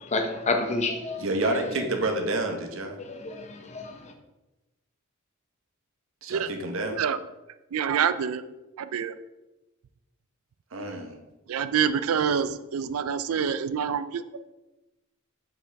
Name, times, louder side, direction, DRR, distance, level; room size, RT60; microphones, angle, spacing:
voice 1, 0.0-1.2 3.0-3.9, left 3 dB, 30° left, 4 dB, 0.7 m, -29 dB
voice 2, 1.2-3.0 6.2-7.0 10.7-11.2, right 2 dB, 65° right, 4 dB, 0.9 m, -28 dB
voice 3, 7.7-8.4 8.8-9.1 11.5-14.4, right 7 dB, 80° right, 13 dB, 0.4 m, -26 dB
7.4 x 4.6 x 3.4 m, 1.0 s
head